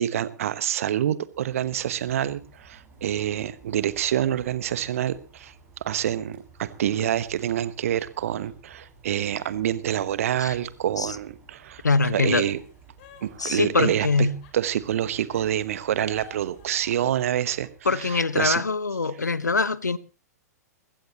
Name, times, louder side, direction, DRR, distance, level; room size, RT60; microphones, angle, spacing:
voice 1, 0.0-5.5 5.8-12.6 13.2-14.1 14.5-18.6, right 11 dB, 55° right, 1.1 m, -27 dB
Rain, 1.1-18.4, right 5 dB, 20° right, 6.7 m, -54 dB
sound 1, 2.5-3.1 3.9-6.0 6.5-6.6 7.0-9.1 9.4-11.4 12.4-14.9 15.3-18.4, left 4 dB, 45° left, 4.5 m, -55 dB
voice 2, 11.8-12.4 13.4-14.4 17.8-20.0, left 3 dB, 80° left, 0.9 m, -23 dB
21.0 x 15.5 x 3.0 m
figure-of-eight pair, 105°, 9 cm